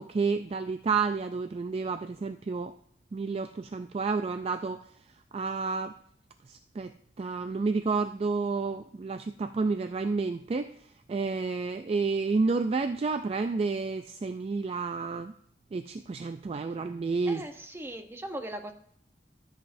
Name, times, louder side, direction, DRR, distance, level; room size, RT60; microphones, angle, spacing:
voice 1, 0.0-2.7 3.1-4.8 5.3-5.9 6.5-6.9 7.2-10.7 11.1-15.3 15.7-17.4, right 4 dB, 35° right, 9 dB, 0.3 m, -30 dB
voice 2, 17.3-18.7, right 1 dB, 15° right, 5 dB, 0.8 m, -39 dB
13.5 x 7.8 x 2.6 m, 0.66 s
head